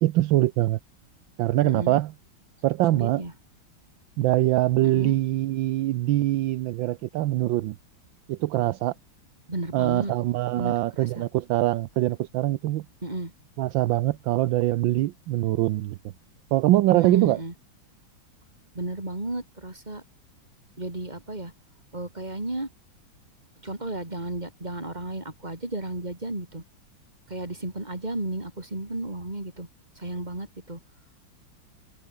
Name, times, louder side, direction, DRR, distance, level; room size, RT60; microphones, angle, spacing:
voice 1, 0.0-0.8 1.4-2.1 2.6-3.2 4.2-7.8 8.3-8.9 9.7-12.9 13.6-16.0 16.5-17.4, right 15 dB, 75° right, 1.4 m, -23 dB
voice 2, 1.6-2.0 2.9-3.3 4.8-5.2 9.5-10.1 10.5-11.2 13.0-13.3 16.9-17.5 18.7-20.0 20.8-21.5 21.9-22.7 23.6-26.6 27.3-29.7 30.0-30.8, right 2 dB, 20° right, 4.4 m, -33 dB
omnidirectional pair, 2.2 m